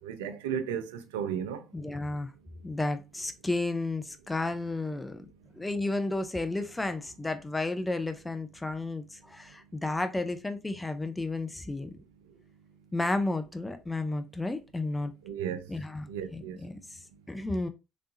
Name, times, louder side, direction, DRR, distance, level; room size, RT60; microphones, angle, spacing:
voice 1, 0.0-1.6 15.2-15.7 16.1-16.6, right 8 dB, 85° right, 0.4 m, -34 dB
voice 2, 1.7-2.3 2.6-5.3 5.5-11.9 12.9-15.1 15.7-17.0 17.3-17.7, left 2 dB, 15° left, 0.6 m, -32 dB
3.3 x 3.1 x 2.6 m
hypercardioid pair, 60°, 0 cm